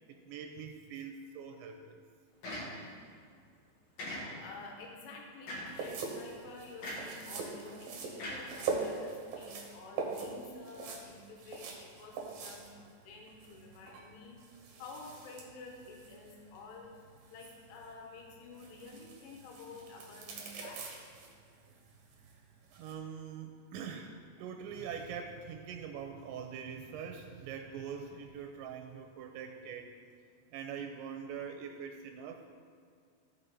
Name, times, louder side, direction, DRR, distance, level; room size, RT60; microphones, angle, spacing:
voice 1, 0.1-1.8 7.6-7.9 22.8-29.9 30.5-32.5, right 7 dB, 85° right, 5 dB, 2.9 m, -43 dB
sound 1, 2.4-3.1 4.0-4.6 5.5-5.9 6.8-7.2 8.2-9.1, left 1 dB, 55° left, 2.2 m, -41 dB
voice 2, 4.4-14.4 14.8-16.9 17.3-20.8, left 3 dB, 85° left, 0 dB, 3.6 m, -50 dB
sound 2, 5.7-22.9, right 4 dB, 70° right, 2.2 m, -43 dB
15.0 x 5.6 x 4.1 m, 2.1 s
omnidirectional pair, 5.4 m